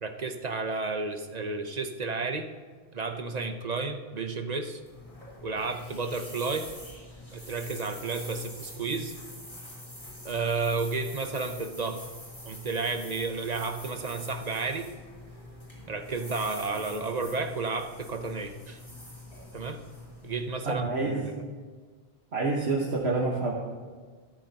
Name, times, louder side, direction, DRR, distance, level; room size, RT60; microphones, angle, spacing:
voice 1, 0.0-2.5 2.9-4.8 5.4-6.7 7.3-9.1 10.2-12.0 12.4-14.9 15.9-18.8 19.5-19.8 20.2-21.4, right 4 dB, 45° right, 7 dB, 0.8 m, -32 dB
sound 1, 4.6-20.8, left 1 dB, 30° left, 3.9 m, -45 dB
voice 2, 20.6-21.3 22.3-23.5, right 3 dB, 85° right, -3 dB, 1.7 m, -27 dB
14.0 x 13.0 x 2.9 m, 1.5 s
omnidirectional pair, 1.1 m